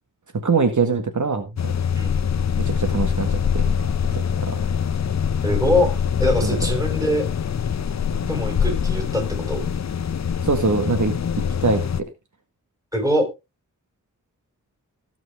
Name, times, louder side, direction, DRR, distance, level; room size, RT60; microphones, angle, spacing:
voice 1, 0.3-1.7 2.6-3.7 4.1-4.6 6.4-6.6 10.4-11.2 11.6-12.1, right 4 dB, 65° right, 7 dB, 1.7 m, -23 dB
sound 1, 1.6-12.0, left 7 dB, 55° left, 0.7 m, -24 dB
voice 2, 5.4-5.9 6.2-7.2 8.3-9.6 12.9-13.3, left 1 dB, 10° right, 3 dB, 5.0 m, -22 dB
18.0 x 6.1 x 3.3 m, 0.24 s
wide cardioid pair, 80°, 32 cm